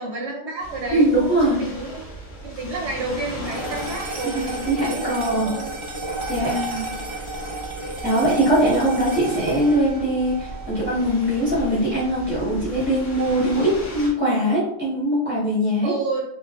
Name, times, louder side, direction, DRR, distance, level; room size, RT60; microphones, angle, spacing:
voice 1, 0.0-2.1 2.4-5.7 6.5-6.9 15.8-16.2, right 3 dB, 65° right, -1 dB, 0.8 m, -30 dB
sound 1, 0.6-14.1, equal, 70° left, 1.2 m, -37 dB
voice 2, 0.9-1.6 4.3-5.5 6.3-6.5 8.0-15.9, right 1 dB, 10° right, -8 dB, 0.7 m, -21 dB
sound 2, 3.5-12.0, right 2 dB, 50° right, 0.3 m, -33 dB
3.1 x 2.6 x 2.2 m, 0.77 s
omnidirectional pair, 1.4 m